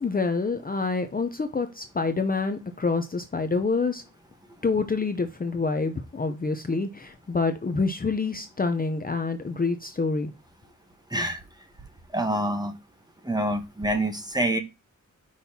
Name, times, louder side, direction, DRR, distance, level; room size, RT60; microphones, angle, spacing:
voice 1, 0.0-4.0 4.6-10.3, left 4 dB, 30° left, 0.6 m, -27 dB
voice 2, 12.1-12.7 13.2-14.6, right 1 dB, 15° right, 1.1 m, -26 dB
6.3 x 5.5 x 2.8 m
wide cardioid pair, 155°, 31 cm